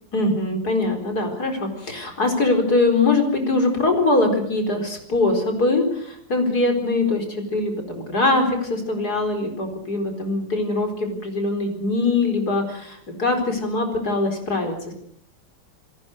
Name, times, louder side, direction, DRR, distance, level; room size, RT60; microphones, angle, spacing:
voice 1, 0.1-14.9, left 2 dB, 55° left, 4 dB, 4.9 m, -22 dB
28.5 x 19.0 x 6.5 m, 0.68 s
omnidirectional pair, 2.0 m